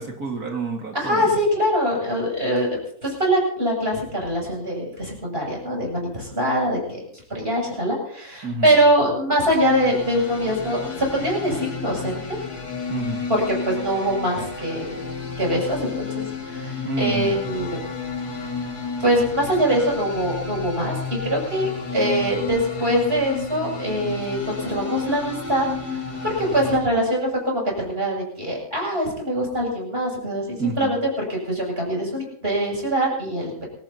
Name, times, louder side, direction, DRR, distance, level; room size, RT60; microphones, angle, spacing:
voice 1, 0.0-1.3 8.4-8.8 12.9-13.3 16.9-17.4 30.6-30.9, right 3 dB, 70° right, 1 dB, 2.7 m, -28 dB
voice 2, 0.9-2.7 3.0-7.0 7.3-12.4 13.3-14.9 15.4-17.8 19.0-31.0 31.3-33.7, equal, 40° right, -1 dB, 8.3 m, -23 dB
sound 1, 9.5-26.8, left 4 dB, 80° left, 3.0 m, -32 dB
26.5 x 16.5 x 3.0 m, 0.66 s
omnidirectional pair, 1.6 m